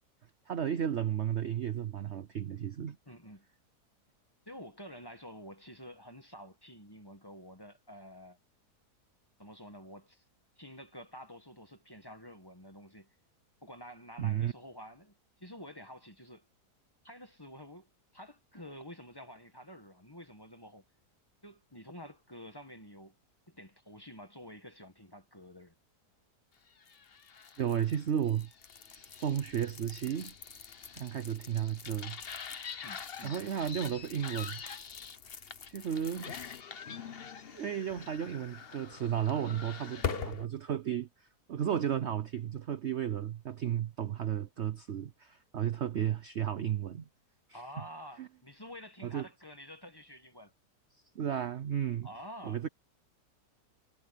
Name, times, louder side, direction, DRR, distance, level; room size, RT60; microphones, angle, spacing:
voice 1, 0.5-3.0 14.2-14.5 27.6-28.5 28.9-30.3 30.9-32.2 33.2-34.6 35.7-36.4 37.5-47.1 47.5-47.6 48.2-48.3 49.0-49.3 51.1-52.1 52.4-52.7, right 9 dB, 55° right, 0.8 m, -33 dB
voice 2, 3.0-3.4 4.4-8.4 9.4-10.2 10.6-13.1 13.6-16.5 17.0-17.9 18.1-20.8 21.4-23.2 23.5-25.7 32.8-33.3 47.5-50.5 52.0-52.6, equal, 15° left, 1.6 m, -49 dB
sound 1, 26.8-40.5, left 7 dB, 40° left, 1.1 m, -43 dB
omnidirectional pair, 1.8 m